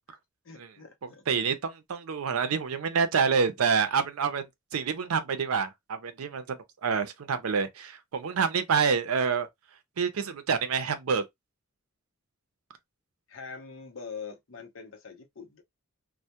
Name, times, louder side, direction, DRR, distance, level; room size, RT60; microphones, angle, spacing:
voice 1, 0.4-1.2 13.3-15.6, left 5 dB, 60° left, 0.7 m, -43 dB
voice 2, 1.3-9.5 10.0-11.2, right 6 dB, 85° right, 0.5 m, -27 dB
2.2 x 2.1 x 2.8 m
head